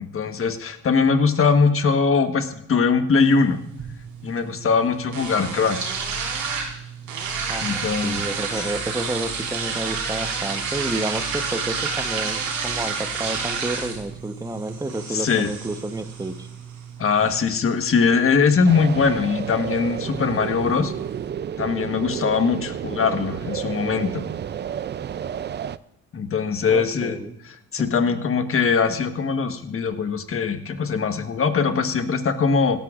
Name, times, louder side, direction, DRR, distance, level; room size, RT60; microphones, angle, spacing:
voice 1, 0.0-3.6 4.2-5.9 7.6-8.2 8.5-8.7 15.1-15.5 17.0-20.9 21.6-24.2 26.1-27.2 27.7-32.8, left 5 dB, 45° left, 8 dB, 1.3 m, -21 dB
sound 1, 3.3-21.3, right 5 dB, 80° right, 3.6 m, -31 dB
voice 2, 7.5-16.5 26.7-27.4 27.8-28.2, right 2 dB, 10° right, 9 dB, 1.0 m, -30 dB
sound 2, 18.7-25.8, right 9 dB, 35° right, 0.4 m, -31 dB
17.0 x 12.5 x 2.5 m, 0.77 s
cardioid pair, 90°, 30 cm